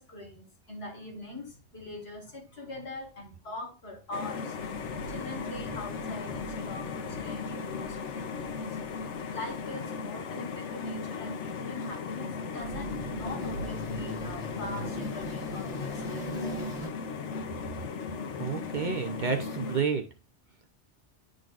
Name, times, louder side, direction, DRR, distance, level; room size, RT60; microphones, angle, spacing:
voice 1, 0.0-4.6 5.1-8.7 9.3-16.5, left 2 dB, 65° left, 1 dB, 1.9 m, -42 dB
sound 1, 4.1-19.8, left 5 dB, 85° left, 1.0 m, -37 dB
sound 2, 4.6-9.6 12.6-16.9, equal, 45° left, 2.0 m, -41 dB
voice 2, 18.4-20.0, right 5 dB, 50° right, 5 dB, 0.7 m, -30 dB
10.5 x 3.8 x 2.4 m, 0.31 s
omnidirectional pair, 1.2 m